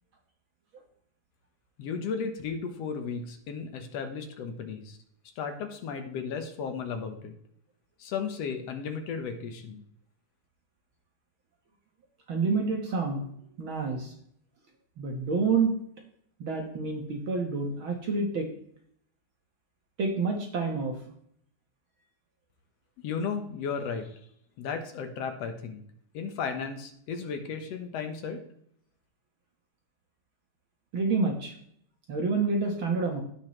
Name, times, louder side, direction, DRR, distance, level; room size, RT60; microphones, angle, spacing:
voice 1, 1.8-5.0 5.4-7.3 8.0-9.8 23.0-24.2 24.6-25.8 26.1-28.4, left 6 dB, 60° left, 6 dB, 1.9 m, -34 dB
voice 2, 12.3-13.2 13.6-14.1 15.0-15.7 16.4-18.5 20.0-21.0 30.9-31.5 32.1-33.2, right 4 dB, 55° right, 1 dB, 1.5 m, -28 dB
16.5 x 5.6 x 3.2 m, 0.68 s
omnidirectional pair, 3.8 m